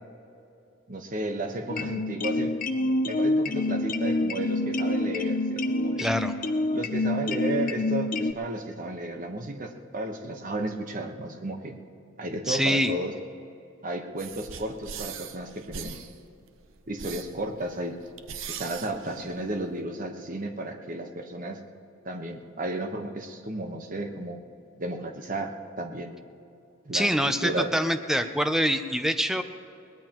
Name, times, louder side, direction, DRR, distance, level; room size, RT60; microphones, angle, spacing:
voice 1, 0.9-2.5 3.1-6.0 6.7-11.8 12.2-13.1 13.8-15.9 16.9-18.0 18.5-21.6 22.0-24.4 24.8-26.1 26.8-27.1 27.4-27.7, right 1 dB, 40° right, 4 dB, 1.2 m, -33 dB
sound 1, 1.7-8.3, left 2 dB, 40° left, 0.6 m, -27 dB
voice 2, 6.0-6.3 12.5-12.9 26.9-29.4, equal, ahead, 8 dB, 0.5 m, -25 dB
sound 2, 14.2-19.8, right 7 dB, 70° right, 0.7 m, -41 dB
22.0 x 18.5 x 3.0 m, 2.7 s
head